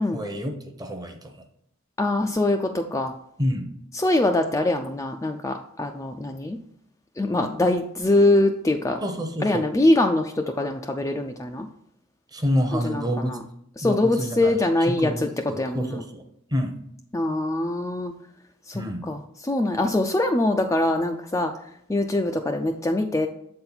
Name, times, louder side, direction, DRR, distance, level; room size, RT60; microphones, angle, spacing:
voice 1, 0.0-1.4 3.4-3.7 9.0-9.7 12.3-13.4 13.8-16.2 16.5-16.8 18.7-19.1, equal, 20° right, 5 dB, 0.7 m, -28 dB
voice 2, 2.0-3.1 3.9-6.6 7.2-9.0 9.4-11.7 12.7-13.4 13.8-15.3 15.6-16.0 17.1-18.1 18.7-21.6 21.9-23.3, left 2 dB, 15° left, 3 dB, 0.3 m, -23 dB
7.5 x 4.4 x 3.9 m, 0.73 s
head